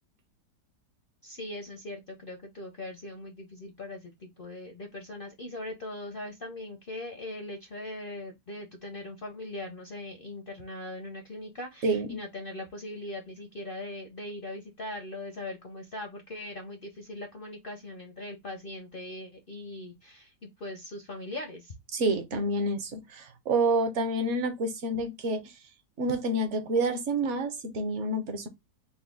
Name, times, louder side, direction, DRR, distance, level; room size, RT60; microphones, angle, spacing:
voice 1, 1.2-21.7, left 1 dB, 60° left, 0.6 m, -40 dB
voice 2, 11.8-12.2 21.9-25.4 26.0-28.5, right 2 dB, 55° right, 0.9 m, -28 dB
4.0 x 2.2 x 3.5 m
omnidirectional pair, 1.8 m